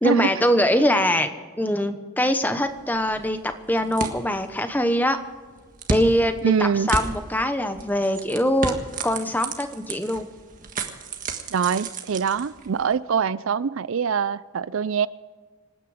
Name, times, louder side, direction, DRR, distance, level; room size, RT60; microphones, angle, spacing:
voice 1, 0.0-1.3 1.6-5.2 5.9-6.3 6.6-8.8 9.0-10.3, equal, 10° left, 8 dB, 1.0 m, -22 dB
sound 1, 2.6-12.9, right 3 dB, 40° right, 1.6 m, -34 dB
voice 2, 6.4-6.9 11.5-15.1, right 6 dB, 70° right, 18 dB, 0.4 m, -24 dB
26.5 x 9.7 x 5.0 m, 1.4 s
head